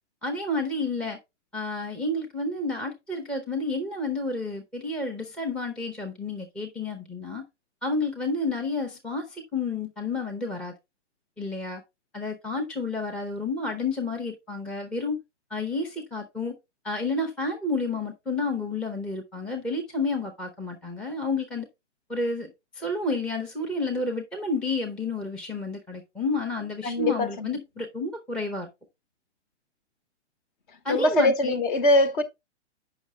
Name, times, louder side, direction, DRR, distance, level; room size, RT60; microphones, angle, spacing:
voice 1, 0.2-1.2 1.5-7.4 7.8-10.7 11.4-11.8 12.1-15.2 15.5-16.5 16.8-21.7 22.1-28.7 30.8-31.6, left 2 dB, 5° left, 0.6 m, -30 dB
voice 2, 26.8-27.5 30.9-32.2, left 1 dB, 45° left, 1.2 m, -22 dB
8.1 x 5.7 x 3.3 m
figure-of-eight pair, 120°, 35 cm